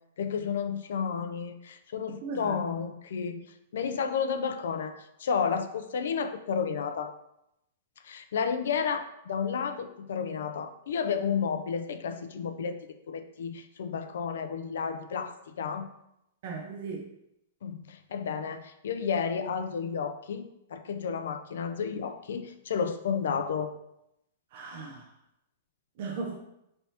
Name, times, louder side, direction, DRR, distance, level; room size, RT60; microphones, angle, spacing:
voice 1, 0.2-3.4 3.7-4.9 5.2-7.1 8.0-15.9 17.6-23.7, left 6 dB, 75° left, 8 dB, 0.4 m, -32 dB
voice 2, 2.2-2.8 16.4-17.1 24.5-25.1 26.0-26.3, right 4 dB, 60° right, 1 dB, 0.5 m, -37 dB
4.1 x 3.3 x 2.8 m, 0.81 s
hypercardioid pair, 130°, 0 cm